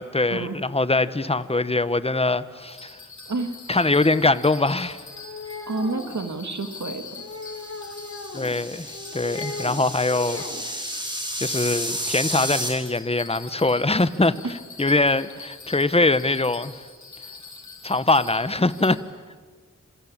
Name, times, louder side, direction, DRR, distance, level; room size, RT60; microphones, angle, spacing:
voice 1, 0.0-3.0 3.7-5.0 8.3-10.9 11.4-14.4 14.8-16.7 17.8-19.0, left 2 dB, 20° left, 14 dB, 1.1 m, -22 dB
Bell, 2.6-19.0, left 4 dB, 70° left, 5.1 m, -44 dB
voice 2, 3.3-3.6 5.7-7.2, right 3 dB, 65° right, 7 dB, 2.0 m, -29 dB
sound 1, 5.1-6.2 7.2-8.5 8.9-9.8 10.1-10.6, left 3 dB, 50° left, 4.5 m, -37 dB
sound 2, 7.6-12.7, equal, 15° right, 6.1 m, -32 dB
27.5 x 22.5 x 8.7 m, 1.5 s
wide cardioid pair, 70°, 30 cm